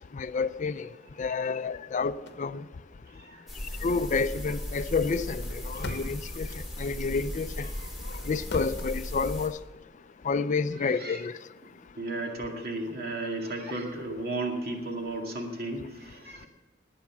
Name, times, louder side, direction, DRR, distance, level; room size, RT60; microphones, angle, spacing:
voice 1, 0.1-0.9 1.2-2.6 3.8-7.7 8.3-9.6 10.2-11.4, left 4 dB, 40° left, 0.4 m, -29 dB
sound 1, 2.0-2.4 5.3-6.4 7.8-8.9, left 2 dB, 65° left, 1.1 m, -39 dB
sound 2, 3.5-9.5, left 1 dB, ahead, 3.6 m, -37 dB
voice 2, 5.7-6.1 7.7-7.9 11.0-11.2 12.0-16.5, right 2 dB, 55° right, 2.2 m, -34 dB
19.5 x 8.6 x 6.0 m
head